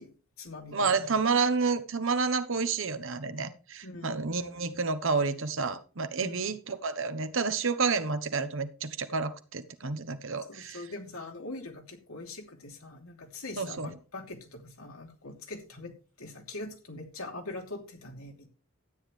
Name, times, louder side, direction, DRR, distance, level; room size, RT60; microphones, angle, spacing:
voice 1, 0.0-0.9 3.8-4.3 6.2-6.4 10.5-18.5, left 2 dB, 80° left, 2.9 m, -43 dB
voice 2, 0.7-10.8 13.6-13.9, right 4 dB, 65° right, 1.1 m, -30 dB
12.5 x 9.5 x 3.4 m
head